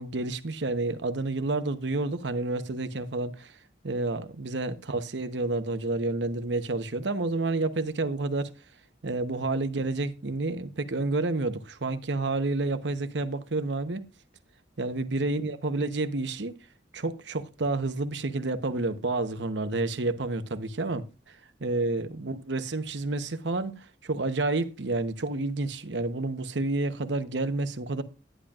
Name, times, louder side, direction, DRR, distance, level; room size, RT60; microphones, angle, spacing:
voice 1, 0.0-3.5 3.8-8.5 9.0-14.0 14.8-16.5 16.9-21.0 21.6-28.0, right 2 dB, 75° right, 0.9 m, -29 dB
11.0 x 10.0 x 2.4 m
head